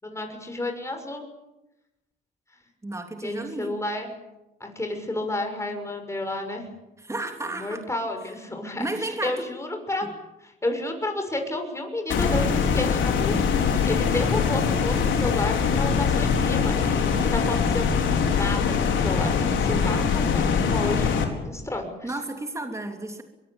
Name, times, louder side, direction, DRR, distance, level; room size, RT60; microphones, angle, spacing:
voice 1, 0.0-1.2 3.2-4.1 4.6-6.7 7.5-10.1 10.4-13.4 13.8-21.1 21.4-22.1, left 2 dB, 15° left, 4 dB, 6.5 m, -31 dB
voice 2, 2.8-3.8 7.0-7.8 8.8-9.5 22.0-23.2, right 2 dB, 15° right, 4 dB, 3.2 m, -32 dB
sound 1, 12.1-21.2, left 6 dB, 75° left, 4.6 m, -23 dB
24.0 x 22.5 x 8.9 m, 0.98 s
cardioid pair, 90°, 20 cm